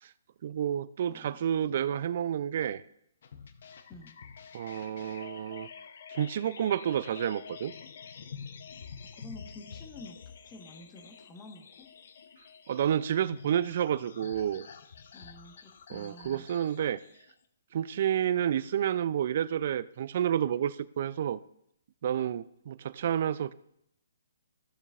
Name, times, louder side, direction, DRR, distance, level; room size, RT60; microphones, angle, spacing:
voice 1, 0.4-2.8 4.5-5.7 6.1-7.7 12.7-14.7 15.9-17.0 17.7-21.4 22.0-23.5, right 9 dB, 50° right, 19 dB, 0.4 m, -30 dB
voice 2, 1.1-1.5 3.9-4.2 9.2-10.2 10.4-11.9 15.1-16.5, left 2 dB, 20° left, 4 dB, 1.3 m, -49 dB
sound 1, 3.2-17.3, left 6 dB, 60° left, 0.8 m, -48 dB
14.5 x 6.7 x 2.5 m, 0.76 s
hypercardioid pair, 140°, 0 cm